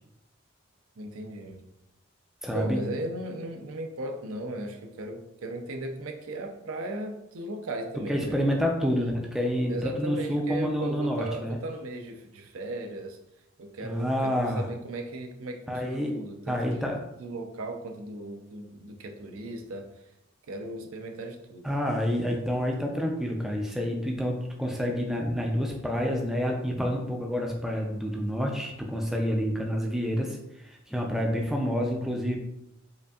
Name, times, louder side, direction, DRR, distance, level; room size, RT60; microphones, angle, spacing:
voice 1, 1.0-1.6 2.5-8.5 8.9-9.1 9.7-13.2 13.6-16.9 17.2-19.9 20.5-21.7, right 1 dB, 90° right, 5 dB, 0.5 m, -37 dB
voice 2, 2.4-2.8 8.1-11.6 13.8-14.7 15.7-16.1 16.5-17.0 21.6-32.4, equal, ahead, 0 dB, 0.3 m, -28 dB
5.0 x 2.6 x 2.3 m, 0.85 s
head